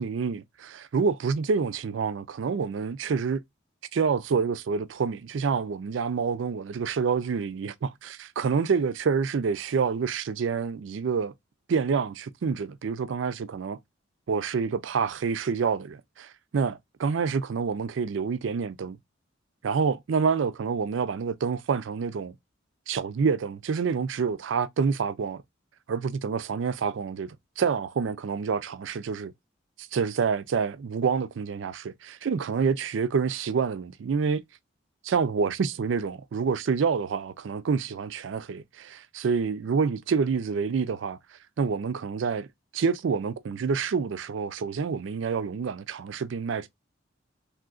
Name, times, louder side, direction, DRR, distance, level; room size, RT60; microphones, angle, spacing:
voice 1, 0.0-3.4 3.9-11.3 11.7-13.8 14.3-19.0 19.6-22.3 22.9-25.4 25.9-29.3 29.9-34.4 35.0-41.2 41.6-42.5 42.7-46.7, right 5 dB, 70° right, 0.4 m, -27 dB
3.7 x 2.7 x 2.3 m
head